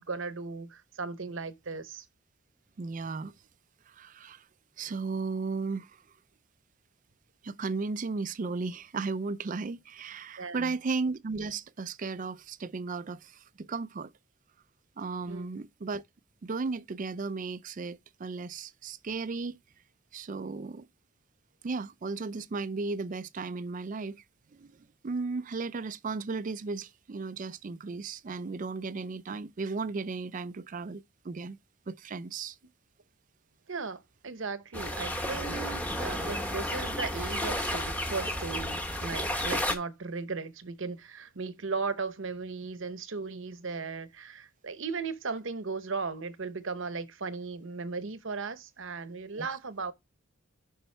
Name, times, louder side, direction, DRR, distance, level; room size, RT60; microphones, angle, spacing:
voice 1, 0.0-2.0 10.4-10.7 15.3-15.5 33.7-49.9, right 4 dB, 60° right, 0.8 m, -37 dB
voice 2, 2.8-3.3 3.9-4.5 4.8-6.0 7.4-14.1 15.0-16.0 16.4-19.6 20.1-20.9 21.6-24.2 24.5-31.6 31.9-32.6 49.3-49.5, right 4 dB, 35° right, 0.4 m, -35 dB
sound 1, 34.7-39.8, equal, 5° left, 0.9 m, -32 dB
7.1 x 5.5 x 3.2 m
head